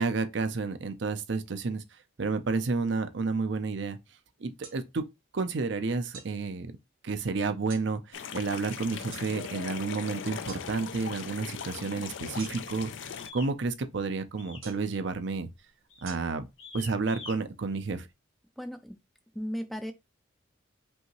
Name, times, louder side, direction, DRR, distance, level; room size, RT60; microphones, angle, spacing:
voice 1, 0.0-1.8 2.2-4.0 4.4-5.0 5.3-6.7 7.0-15.5 16.0-16.5 16.7-18.1, right 4 dB, 60° right, 0.6 m, -31 dB
sound 1, 4.6-4.8 6.1-6.3 7.7-7.9 9.1-9.3 10.5-10.7 12.4-12.8 14.6-14.9 16.1-16.2, right 6 dB, 85° right, 1.2 m, -45 dB
sound 2, 8.1-13.3, left 7 dB, 65° left, 0.4 m, -39 dB
sound 3, 13.2-13.5 14.4-14.7 15.0-15.4 15.9-16.1 16.6-17.4, left 4 dB, 90° left, 1.6 m, -45 dB
voice 2, 18.6-19.0 19.3-19.9, equal, ahead, 0.4 m, -35 dB
5.3 x 2.8 x 3.0 m
head